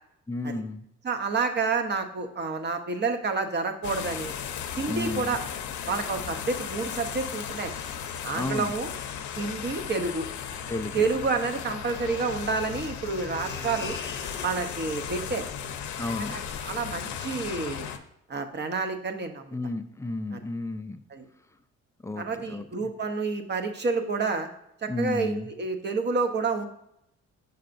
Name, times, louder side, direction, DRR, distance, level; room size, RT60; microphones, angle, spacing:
voice 1, 0.3-0.8 4.9-5.4 8.3-8.7 10.7-11.1 16.0-16.3 19.5-21.0 22.0-22.9 24.9-25.5, left 2 dB, 10° left, 9 dB, 0.3 m, -33 dB
voice 2, 1.0-4.3 4.8-5.4 5.9-7.7 8.2-8.9 9.4-10.3 10.9-14.0 14.4-15.4 16.2-17.9 18.3-19.6 20.3-20.4 21.1-21.3 22.2-24.5 24.8-26.7, right 4 dB, 35° right, 7 dB, 0.7 m, -29 dB
sound 1, 3.8-18.0, left 8 dB, 70° left, 0.6 m, -36 dB
sound 2, 12.5-17.0, left 5 dB, 40° left, 0.8 m, -42 dB
6.6 x 5.6 x 2.5 m, 0.79 s
cardioid pair, 90°, 30 cm